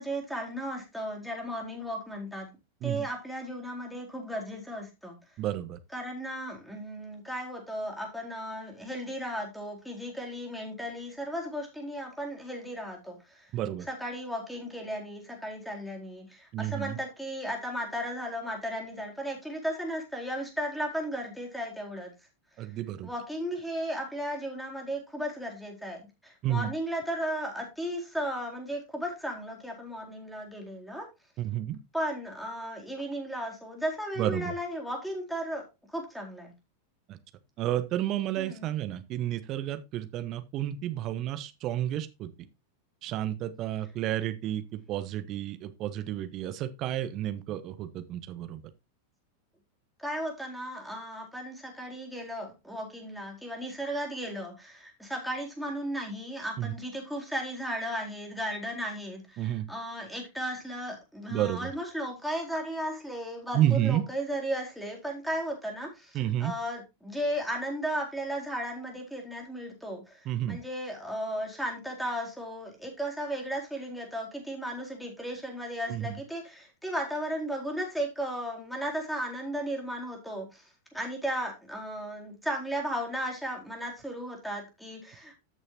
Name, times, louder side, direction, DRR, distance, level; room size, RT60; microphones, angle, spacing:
voice 1, 0.0-2.5 2.8-5.2 5.9-13.5 13.8-22.1 22.6-22.7 23.0-31.1 31.9-35.7 35.9-36.5 38.4-38.7 50.0-80.7 80.9-85.4, equal, ahead, 4.2 m, -35 dB
voice 2, 5.4-5.8 13.5-13.8 16.5-17.0 22.6-23.1 26.4-26.7 31.4-31.8 34.2-34.5 37.1-37.2 37.6-42.3 43.0-48.6 56.6-56.7 59.4-59.6 61.3-61.7 63.5-64.0 66.1-66.5 70.2-70.6 75.9-76.2, right 12 dB, 35° right, 1.2 m, -31 dB
14.0 x 6.3 x 2.9 m
figure-of-eight pair, 90°, 0 cm